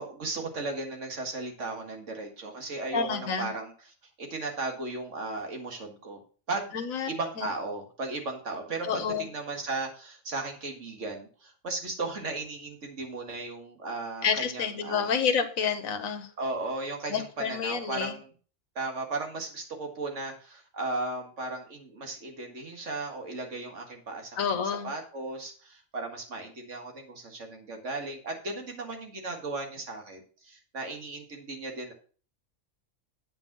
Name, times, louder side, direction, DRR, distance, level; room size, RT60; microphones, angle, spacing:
voice 1, 0.0-6.2 6.5-6.7 7.1-15.1 16.4-18.3 18.8-31.9, right 3 dB, 60° right, 3 dB, 2.1 m, -36 dB
voice 2, 2.9-3.5 6.7-7.1 7.4-7.5 8.8-9.3 14.2-16.3 17.1-18.2 24.4-24.9, left 6 dB, 85° left, 8 dB, 1.4 m, -29 dB
8.8 x 5.5 x 5.9 m, 0.40 s
omnidirectional pair, 1.4 m